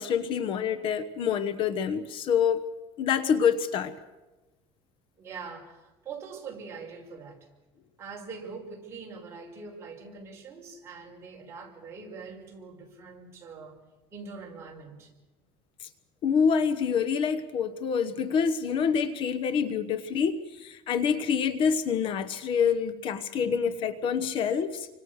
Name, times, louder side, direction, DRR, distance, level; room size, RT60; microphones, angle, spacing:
voice 1, 0.0-2.6 3.0-3.9 15.8-15.9 16.2-24.9, left 7 dB, 45° left, 1.2 m, -26 dB
voice 2, 5.2-7.4 8.0-13.8 14.1-15.1, right 5 dB, 20° right, 6.0 m, -43 dB
29.0 x 25.0 x 6.6 m
cardioid pair, 165°, 12 cm